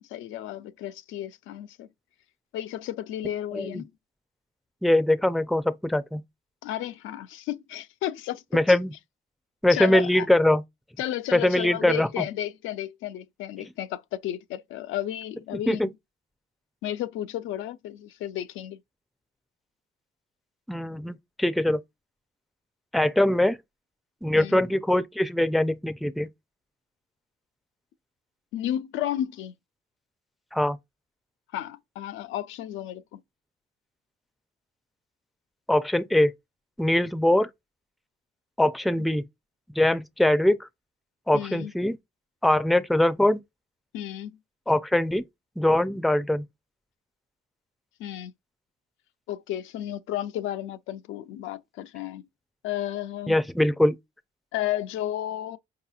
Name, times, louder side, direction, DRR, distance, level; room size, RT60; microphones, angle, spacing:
voice 1, 0.0-1.9 2.5-3.9 6.6-8.6 9.7-10.3 11.0-15.9 16.8-18.8 24.3-24.6 28.5-29.5 31.5-33.2 39.0-39.1 41.3-41.7 43.9-44.3 48.0-48.3 49.3-52.2 52.6-53.4 54.5-55.6, left 12 dB, 90° left, 0.4 m, -33 dB
voice 2, 3.5-3.8 4.8-6.2 8.5-8.9 9.6-10.6 11.3-12.1 13.6-13.7 15.7-15.9 20.7-21.8 22.9-23.6 24.2-26.3 30.5-30.8 35.7-36.3 36.8-37.5 38.6-39.3 39.8-40.7 41.3-42.0 42.4-43.4 44.7-45.2 45.6-46.4 53.3-54.0, left 1 dB, ahead, 0.4 m, -22 dB
4.7 x 2.8 x 2.3 m
cardioid pair, 90°, 20 cm